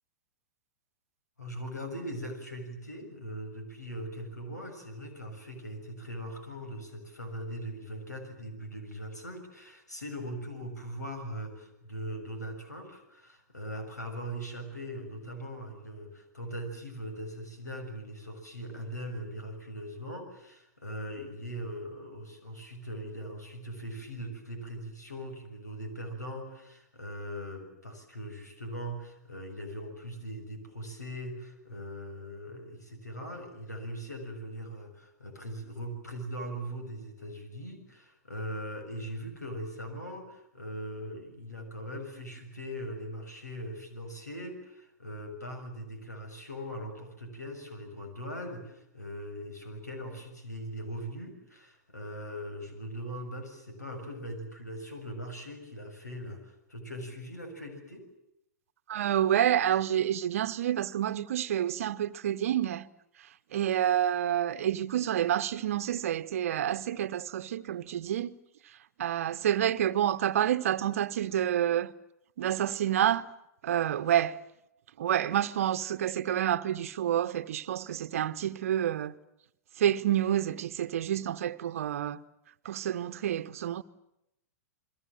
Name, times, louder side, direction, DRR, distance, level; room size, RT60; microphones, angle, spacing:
voice 1, 1.4-58.0, equal, 80° left, 6.9 m, -40 dB
voice 2, 58.9-62.9 63.5-68.4 69.0-71.9 72.4-73.3 73.6-74.4 75.0-79.1 79.8-82.2 82.6-83.8, right 11 dB, 55° right, 1.0 m, -28 dB
30.0 x 22.5 x 7.7 m
figure-of-eight pair, 100°, 9 cm